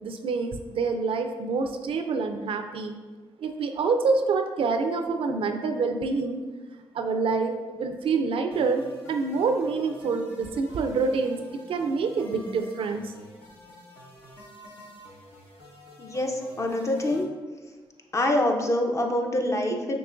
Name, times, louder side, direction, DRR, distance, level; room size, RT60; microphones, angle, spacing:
voice 1, 0.0-3.0 3.4-6.4 6.9-13.1, right 4 dB, 75° right, 6 dB, 0.4 m, -27 dB
sound 1, 8.5-17.2, left 1 dB, 80° left, 1.4 m, -49 dB
voice 2, 16.0-17.3 18.1-20.0, left 1 dB, 30° left, 2 dB, 0.6 m, -25 dB
5.9 x 3.0 x 2.5 m, 1.4 s
cardioid pair, 65°, 9 cm